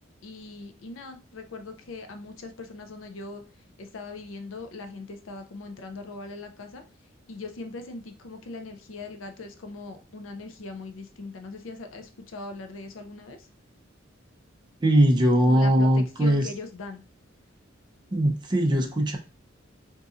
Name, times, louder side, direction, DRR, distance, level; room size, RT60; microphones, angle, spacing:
voice 1, 0.2-3.4 3.8-6.8 7.3-13.5 15.4-17.0, left 3 dB, 70° left, 0.5 m, -40 dB
voice 2, 14.8-16.5 18.1-19.2, equal, 25° right, 0.5 m, -20 dB
3.8 x 2.7 x 2.4 m
head